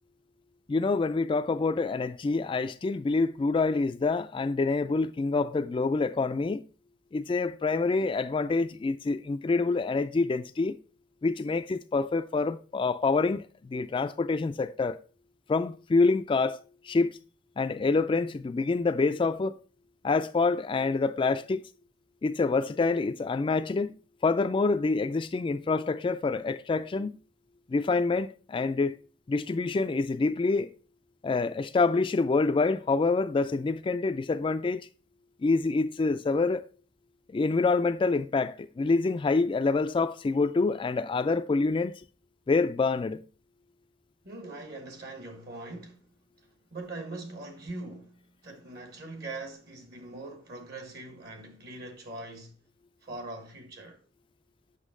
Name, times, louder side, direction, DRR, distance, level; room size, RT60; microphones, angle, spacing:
voice 1, 0.7-6.6 7.1-10.8 11.2-15.0 15.5-16.6 16.8-17.2 17.6-19.6 20.0-21.7 22.2-23.9 24.2-27.2 27.7-29.0 29.3-30.7 31.2-34.9 35.4-36.7 37.3-42.0 42.5-43.2, left 3 dB, 25° left, 0.3 m, -26 dB
voice 2, 44.2-46.1 46.7-52.6 53.0-54.0, right 2 dB, 55° right, 1.4 m, -42 dB
8.2 x 5.9 x 3.6 m
head